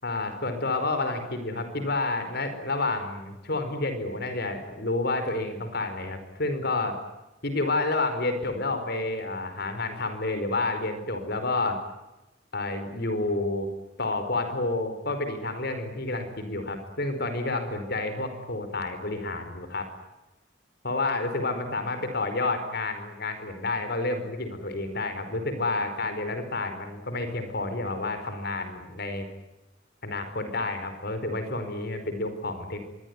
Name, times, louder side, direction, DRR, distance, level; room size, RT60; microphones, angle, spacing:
voice 1, 0.0-7.0 7.4-11.8 12.5-13.7 14.0-19.9 20.8-29.3 30.0-32.8, left 2 dB, 55° left, 9 dB, 4.9 m, -29 dB
26.0 x 23.0 x 9.7 m, 0.99 s
head